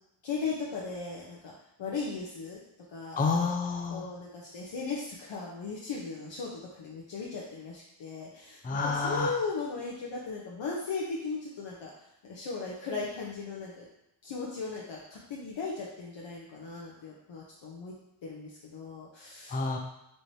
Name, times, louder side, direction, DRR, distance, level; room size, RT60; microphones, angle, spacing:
voice 1, 0.2-1.5 1.8-2.6 2.9-3.4 3.9-11.9 12.2-13.9 14.2-17.9 18.2-19.6, left 4 dB, 65° left, -4 dB, 0.9 m, -37 dB
voice 2, 3.2-4.0 8.6-9.3 19.5-19.8, left 4 dB, 20° left, 2 dB, 0.5 m, -29 dB
4.7 x 3.1 x 2.7 m, 0.86 s
cardioid pair, 75°, 49 cm